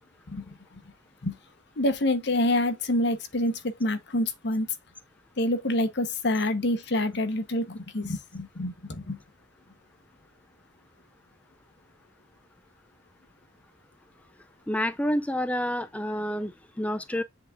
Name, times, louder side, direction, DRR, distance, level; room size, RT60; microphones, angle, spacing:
voice 1, 1.8-4.7 5.4-9.2, left 1 dB, 65° left, 1.0 m, -27 dB
voice 2, 14.7-17.2, equal, 5° left, 0.4 m, -29 dB
7.8 x 3.6 x 3.6 m
head